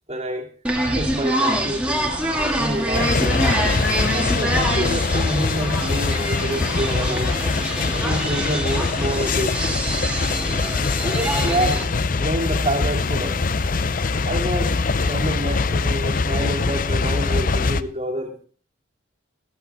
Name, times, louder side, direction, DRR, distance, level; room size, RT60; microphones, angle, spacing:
voice 1, 0.1-0.5 0.9-3.5 4.0-7.3 7.9-9.5 11.0-11.8 12.2-13.4 14.3-18.5, right 1 dB, 35° right, 1 dB, 2.3 m, -27 dB
sound 1, 0.6-11.8, right 1 dB, 5° right, 2.0 m, -25 dB
sound 2, 2.9-17.8, left 4 dB, 45° left, 0.5 m, -23 dB
14.0 x 14.0 x 3.5 m, 0.42 s
head